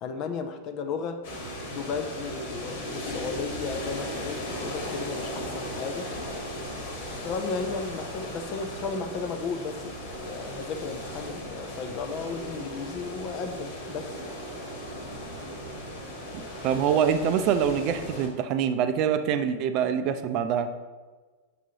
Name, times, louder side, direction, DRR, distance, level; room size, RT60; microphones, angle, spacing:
voice 1, 0.0-1.2 1.7-6.1 7.2-9.9 10.2-14.1, left 5 dB, 40° left, 8 dB, 0.6 m, -34 dB
sound 1, 1.2-18.3, equal, 55° left, 1.5 m, -37 dB
voice 2, 16.3-20.7, right 8 dB, 40° right, 9 dB, 0.5 m, -25 dB
6.8 x 6.0 x 2.9 m, 1.3 s
figure-of-eight pair, 90°, 0 cm